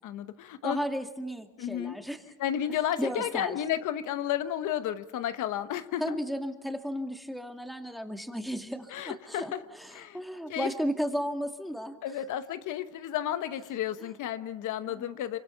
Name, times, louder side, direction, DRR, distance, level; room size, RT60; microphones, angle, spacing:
voice 1, 0.0-0.8 1.6-2.0 2.4-6.2 8.9-9.6 9.9-10.2 10.5-10.7 12.0-15.4, left 11 dB, 85° left, 11 dB, 1.1 m, -32 dB
voice 2, 0.6-2.2 2.7-3.6 6.0-12.0 14.0-14.1 14.9-15.2, equal, ahead, 5 dB, 2.4 m, -34 dB
26.5 x 25.0 x 5.7 m, 1.1 s
cardioid pair, 90°, 30 cm